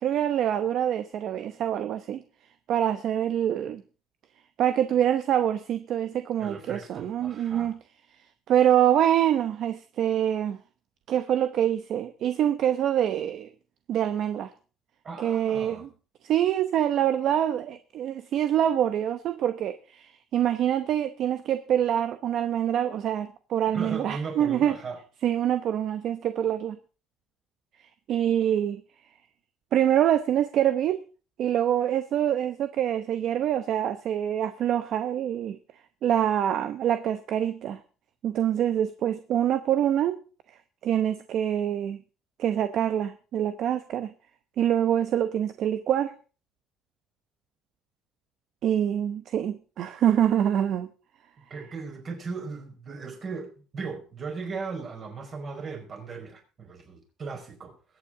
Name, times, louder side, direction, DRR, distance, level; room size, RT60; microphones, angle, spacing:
voice 1, 0.0-2.2 2.7-3.8 4.6-7.8 8.5-10.6 11.1-13.5 13.9-14.5 15.2-15.9 16.2-24.8 25.2-26.8 28.1-28.8 29.7-31.1 31.4-35.6 36.0-37.8 38.2-40.2 40.8-42.0 42.4-44.1 44.6-46.1 48.6-50.9, right 10 dB, 55° right, 0.9 m, -25 dB
voice 2, 6.4-7.7 15.0-15.9 23.7-25.0 51.5-57.8, right 4 dB, 35° right, 5.1 m, -37 dB
22.0 x 8.7 x 3.8 m
cardioid pair, 140°, 0 cm